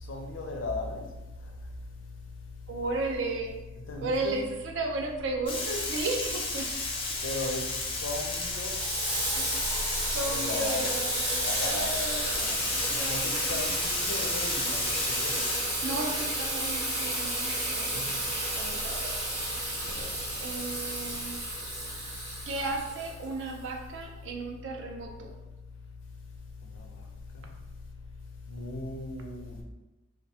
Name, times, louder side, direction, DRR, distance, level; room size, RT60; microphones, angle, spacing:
voice 1, 0.0-1.0 1.4-1.5 3.9-4.4 7.2-8.8 9.2-9.4 10.3-10.9 11.4-11.9 12.3-15.6 17.7-18.1 19.8-20.2 26.6-27.0 27.3-27.4 28.5-29.6, left 2 dB, 85° left, 1 dB, 0.5 m, -37 dB
voice 2, 2.7-3.6 4.0-6.7 9.4-9.6 10.1-12.3 12.7-13.6 15.8-18.1 18.5-19.1 20.4-21.4 22.5-25.3, right 2 dB, 70° right, 2 dB, 0.4 m, -34 dB
Frying (food), 5.5-15.6, left 2 dB, 30° left, 0.4 m, -33 dB
Water tap faucet / Sink (filling or washing), 8.8-23.5, right 1 dB, 25° right, 0.7 m, -32 dB
2.3 x 2.1 x 2.7 m, 1.1 s
head